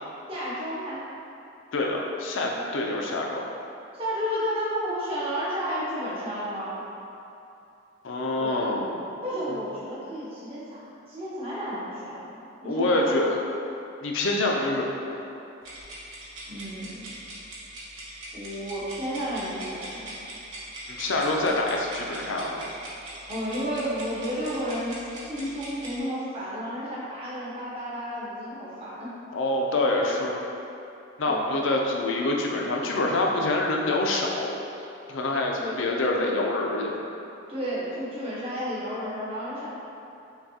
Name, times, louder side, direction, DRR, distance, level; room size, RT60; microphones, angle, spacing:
voice 1, 0.3-1.0 3.9-6.8 8.4-8.7 9.2-10.8 11.1-13.3 16.5-17.1 18.3-20.1 23.3-29.2 31.2-31.7 35.6-35.8 37.5-39.7, equal, 30° right, -10 dB, 0.9 m, -32 dB
voice 2, 1.7-3.5 8.0-9.1 9.5-9.6 12.6-13.4 14.0-15.2 20.9-22.7 29.3-30.4 31.2-34.6 35.1-36.9, left 2 dB, 70° left, 0 dB, 0.5 m, -26 dB
sound 1, 15.6-26.0, right 1 dB, 90° right, 1.0 m, -41 dB
5.7 x 2.3 x 2.7 m, 2.8 s
head